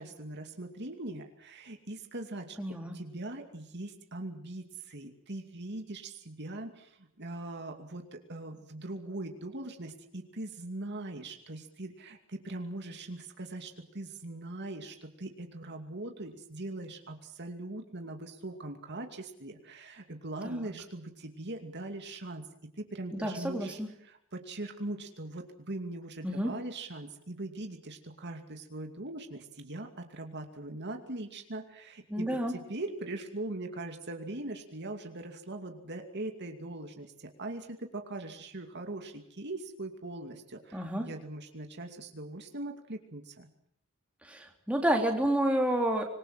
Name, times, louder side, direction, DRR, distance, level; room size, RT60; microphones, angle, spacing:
voice 1, 0.0-2.6 2.9-22.5 22.8-43.5, right 2 dB, 50° right, 4 dB, 2.6 m, -41 dB
voice 2, 2.6-3.0 20.4-20.7 23.1-23.9 26.2-26.5 32.1-32.5 40.7-41.1 44.2-46.0, right 1 dB, 5° right, 1 dB, 3.5 m, -30 dB
26.0 x 22.0 x 7.6 m, 0.70 s
head